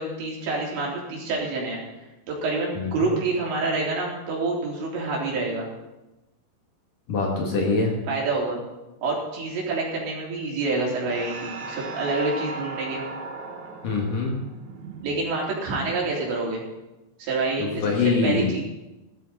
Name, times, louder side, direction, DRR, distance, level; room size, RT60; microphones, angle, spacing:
voice 1, 0.0-1.8 2.3-5.7 8.1-8.6 9.0-13.0 15.0-16.6 17.2-18.6, right 3 dB, 85° right, -3 dB, 5.8 m, -27 dB
voice 2, 7.1-7.9 13.8-14.3 17.6-18.6, left 4 dB, 55° left, 0 dB, 3.4 m, -24 dB
sound 1, 11.1-15.9, right 3 dB, 60° right, 2.0 m, -37 dB
18.0 x 13.0 x 4.2 m, 1.0 s
omnidirectional pair, 5.0 m